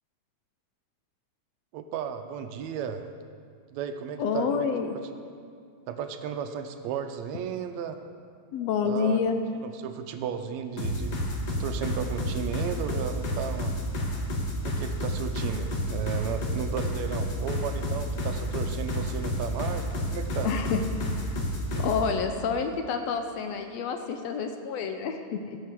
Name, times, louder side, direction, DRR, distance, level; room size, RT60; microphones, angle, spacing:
voice 1, 1.7-3.0 3.7-5.0 5.9-8.0 8.9-9.2 9.7-11.2 11.5-13.7 14.6-20.5 21.7-21.9, right 8 dB, 75° right, 7 dB, 1.8 m, -34 dB
voice 2, 4.2-5.0 8.5-9.3 20.4-20.8 21.8-25.6, left 6 dB, 75° left, 6 dB, 1.6 m, -28 dB
sound 1, 10.8-22.0, left 1 dB, 45° left, 1.4 m, -30 dB
15.0 x 5.6 x 7.5 m, 2.2 s
omnidirectional pair, 3.5 m